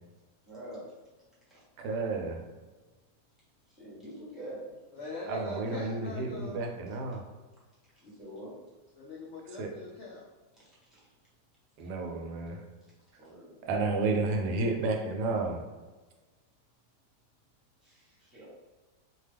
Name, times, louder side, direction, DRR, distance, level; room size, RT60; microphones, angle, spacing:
voice 1, 0.4-0.8 1.5-1.6 3.7-4.8 8.0-8.5 13.2-13.5 17.8-18.5, right 1 dB, ahead, -9 dB, 0.9 m, -45 dB
voice 2, 1.8-2.4 5.3-7.2 9.6-9.7 11.8-12.6 13.6-15.6, right 3 dB, 80° right, 1 dB, 1.1 m, -31 dB
voice 3, 4.9-6.6 9.0-10.2, left 2 dB, 75° left, -4 dB, 0.6 m, -42 dB
2.8 x 2.2 x 3.3 m, 1.2 s
omnidirectional pair, 1.8 m